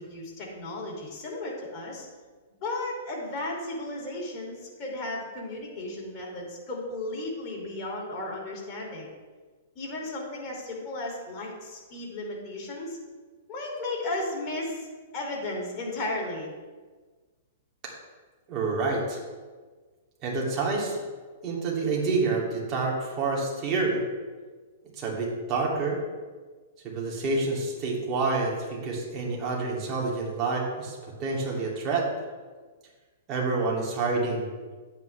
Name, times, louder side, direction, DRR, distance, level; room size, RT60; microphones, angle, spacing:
voice 1, 0.0-2.1 2.6-9.1 9.7-13.0 13.5-14.9 15.1-16.5, left 2 dB, 30° left, -2 dB, 3.0 m, -34 dB
voice 2, 18.5-19.2 20.2-21.0 21.4-24.0 25.0-26.0 26.8-32.1 33.3-34.5, right 3 dB, 30° right, -3 dB, 2.7 m, -28 dB
10.5 x 8.5 x 3.4 m, 1.4 s
hypercardioid pair, 135°, 0 cm